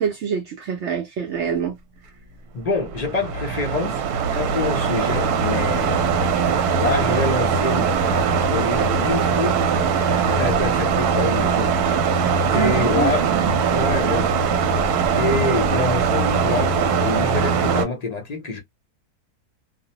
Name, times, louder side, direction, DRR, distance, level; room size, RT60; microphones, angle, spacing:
voice 1, 0.0-1.8 12.5-13.6, right 7 dB, 65° right, 0.7 m, -25 dB
voice 2, 2.5-4.0 4.3-6.1 6.7-9.6 10.3-13.3 13.7-14.5 15.1-18.6, left 3 dB, 50° left, 0.4 m, -26 dB
sound 1, 2.8-17.8, right 5 dB, 80° right, 1.1 m, -21 dB
2.5 x 2.0 x 2.8 m
omnidirectional pair, 1.6 m